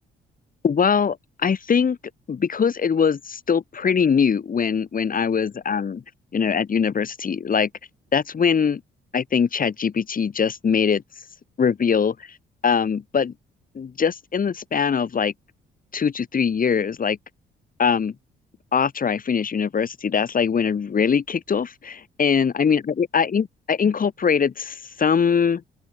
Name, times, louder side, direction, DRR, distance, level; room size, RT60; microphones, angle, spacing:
voice 1, 0.6-1.2 1.4-2.0 2.3-6.0 6.3-7.7 8.1-8.8 9.1-11.0 11.6-12.2 12.6-13.3 13.8-15.3 15.9-17.2 17.8-18.2 18.7-25.6, left 6 dB, 45° left, 5.2 m, -22 dB
open air
cardioid pair, 90°, 20 cm